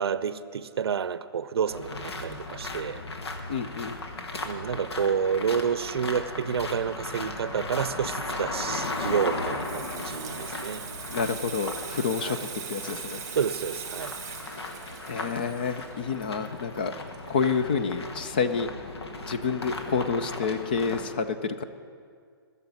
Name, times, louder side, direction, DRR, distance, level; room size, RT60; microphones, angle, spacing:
voice 1, 0.0-3.0 4.4-10.8 12.2-12.4 13.4-14.1, right 7 dB, 75° right, 0.6 m, -29 dB
sound 1, 1.7-21.1, left 3 dB, 90° left, 1.6 m, -37 dB
voice 2, 3.5-4.0 11.1-13.2 15.1-16.9 17.3-18.7 19.3-21.6, left 5 dB, 20° left, 0.4 m, -28 dB
Water tap faucet / Sink (filling or washing), 8.5-17.8 18.1-18.3, right 7 dB, 15° right, 1.3 m, -41 dB
13.0 x 7.0 x 9.7 m
hypercardioid pair, 180°, 13 cm